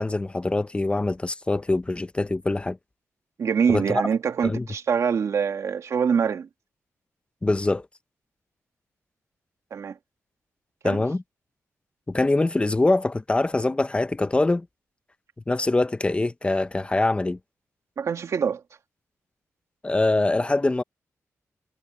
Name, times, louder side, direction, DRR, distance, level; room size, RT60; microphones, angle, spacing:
voice 1, 0.0-2.8 3.7-4.0 4.4-4.6 7.4-7.9 10.8-11.2 12.1-14.7 15.5-17.4 19.8-20.8, left 2 dB, 20° left, 0.9 m, -23 dB
voice 2, 3.4-6.5 9.7-10.0 10.8-11.0 18.0-18.6, right 6 dB, 65° right, 2.0 m, -24 dB
cardioid pair, 90°, 6 cm